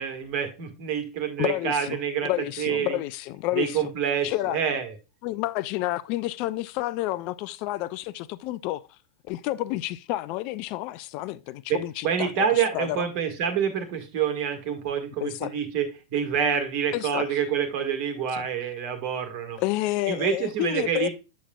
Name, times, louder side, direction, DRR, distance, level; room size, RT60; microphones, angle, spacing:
voice 1, 0.0-2.3 2.6-3.0 3.5-4.9 11.7-19.6 20.1-21.1, right 7 dB, 45° right, 1.6 m, -27 dB
voice 2, 1.4-3.9 4.2-4.7 5.2-8.9 9.3-13.1 15.2-15.5 16.9-17.4 18.3-18.4 19.6-21.1, left 16 dB, 45° left, 0.3 m, -30 dB
8.3 x 7.2 x 2.3 m
figure-of-eight pair, 95°, 2 cm